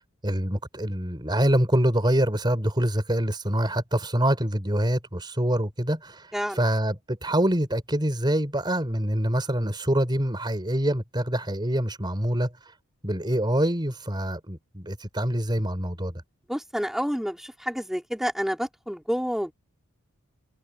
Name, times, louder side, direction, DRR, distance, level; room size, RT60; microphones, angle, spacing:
voice 1, 0.2-12.5 13.0-16.2, right 1 dB, 20° right, 4.0 m, -25 dB
voice 2, 16.5-19.5, equal, ahead, 4.1 m, -29 dB
head